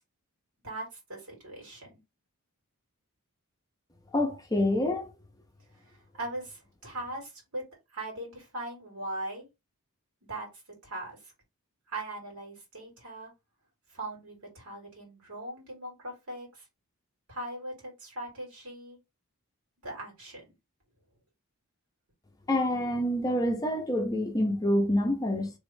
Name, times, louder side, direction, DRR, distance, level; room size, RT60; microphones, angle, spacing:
voice 1, 0.6-2.0 6.2-7.6 7.9-9.5 10.3-10.5 10.8-11.2 11.9-13.3 13.9-16.6 17.3-19.0 19.8-20.5, right 1 dB, 70° right, 2.4 m, -40 dB
voice 2, 4.1-5.1 22.5-25.5, left 1 dB, 15° left, 0.6 m, -27 dB
3.4 x 2.4 x 3.5 m
head